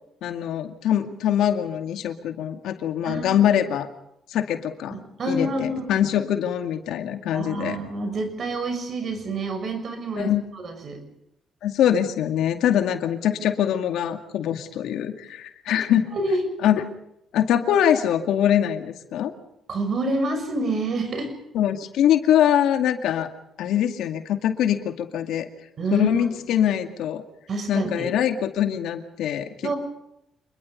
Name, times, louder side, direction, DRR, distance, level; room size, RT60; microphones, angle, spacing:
voice 1, 0.2-3.9 4.3-5.0 5.3-7.8 10.2-10.4 11.6-16.1 16.6-16.8 17.3-19.3 21.5-23.3 23.6-25.5 25.9-27.2 27.7-29.7, left 10 dB, 85° left, 7 dB, 2.2 m, -23 dB
voice 2, 3.0-3.4 4.9-5.8 7.3-11.0 15.8-15.9 16.1-16.4 19.7-21.3 25.8-26.3 27.5-28.1 29.6-29.8, right 2 dB, 50° right, 7 dB, 6.5 m, -28 dB
27.0 x 21.5 x 5.3 m, 0.81 s
cardioid pair, 90°, 0 cm